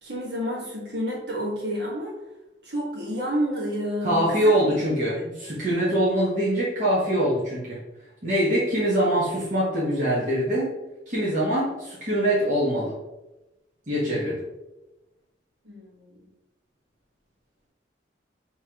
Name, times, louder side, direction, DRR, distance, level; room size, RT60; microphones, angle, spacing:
voice 1, 0.0-2.2 2.6-4.8 5.1-5.3 15.6-16.3, equal, 60° right, -4 dB, 1.5 m, -30 dB
voice 2, 4.0-7.8 8.2-10.7 11.1-13.0 13.9-14.4, right 1 dB, 40° right, -9 dB, 1.2 m, -23 dB
5.7 x 3.0 x 2.9 m, 0.98 s
head